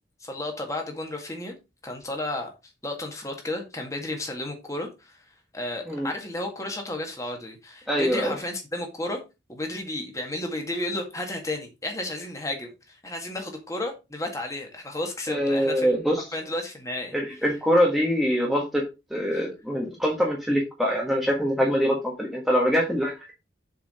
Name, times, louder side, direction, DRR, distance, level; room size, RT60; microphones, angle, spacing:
voice 1, 0.2-1.5 1.8-5.2 5.5-9.2 9.5-16.0 16.3-17.4 19.3-19.4, left 1 dB, 15° left, 2 dB, 1.9 m, -33 dB
voice 2, 7.9-8.3 15.3-16.2 17.1-18.8 19.1-23.3, equal, ahead, -2 dB, 1.4 m, -24 dB
7.0 x 5.0 x 4.8 m, 0.26 s
head